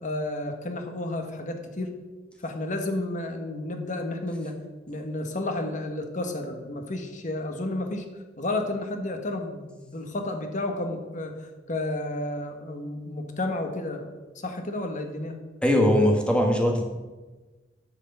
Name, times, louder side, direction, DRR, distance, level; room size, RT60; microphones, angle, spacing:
voice 1, 0.0-2.0 2.4-4.6 4.9-8.0 8.4-15.4, left 2 dB, 45° left, 5 dB, 1.5 m, -31 dB
voice 2, 15.6-16.8, left 1 dB, 5° left, 1 dB, 1.6 m, -20 dB
11.0 x 4.9 x 7.9 m, 1.2 s
head